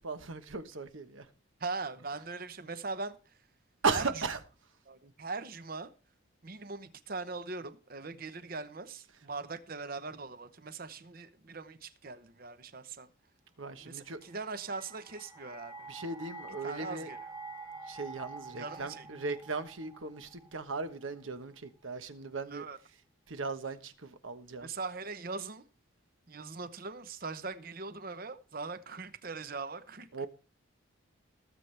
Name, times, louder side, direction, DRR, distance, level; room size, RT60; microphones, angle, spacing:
voice 1, 0.0-1.3 3.8-4.4 13.6-14.2 15.9-17.1 17.9-22.7 23.3-24.7 30.1-30.3, right 4 dB, 75° right, 1.1 m, -37 dB
voice 2, 1.6-3.4 3.9-4.1 4.9-5.9 6.4-13.1 13.8-15.9 16.6-17.2 18.6-19.1 22.5-22.8 24.6-25.6 26.3-30.3, right 4 dB, 45° right, 0.8 m, -41 dB
sound 1, 14.1-21.2, right 3 dB, 25° right, 1.7 m, -48 dB
19.0 x 7.9 x 3.3 m
head